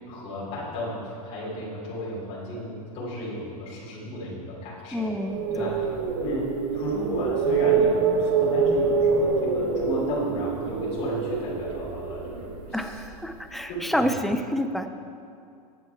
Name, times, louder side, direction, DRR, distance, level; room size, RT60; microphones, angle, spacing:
voice 1, 0.0-5.1 5.5-5.9 6.2-13.0 13.7-14.1, equal, 30° left, -6 dB, 3.3 m, -34 dB
voice 2, 4.9-5.8 12.7-14.9, equal, ahead, 6 dB, 0.4 m, -28 dB
sound 1, 5.2-13.3, right 5 dB, 55° right, 1.3 m, -25 dB
14.0 x 9.9 x 4.6 m, 2.5 s
supercardioid pair, 160°, 19 cm